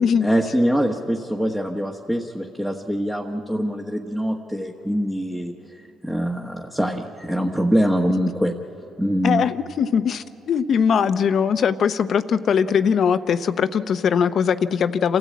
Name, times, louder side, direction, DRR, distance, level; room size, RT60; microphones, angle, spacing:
voice 1, 0.2-5.5 6.0-8.5 9.0-9.4, equal, 5° right, 0 dB, 1.2 m, -23 dB
voice 2, 9.2-15.2, left 7 dB, 55° left, 12 dB, 0.7 m, -20 dB
27.5 x 14.0 x 8.5 m, 2.8 s
cardioid pair, 95°, 0 cm